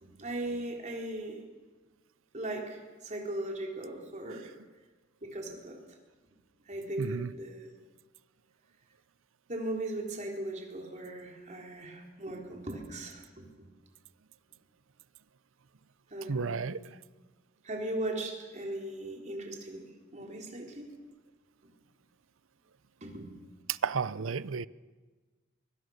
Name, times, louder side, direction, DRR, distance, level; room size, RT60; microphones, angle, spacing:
voice 1, 0.0-1.4 2.3-4.5 5.2-6.0 6.7-7.7 9.5-13.7 16.1-16.8 17.6-20.9 23.0-23.3, right 1 dB, 35° right, 4.0 m, -38 dB
voice 2, 7.0-7.3 16.3-16.8 23.7-24.7, right 5 dB, 80° right, 0.6 m, -32 dB
24.0 x 23.0 x 6.6 m
head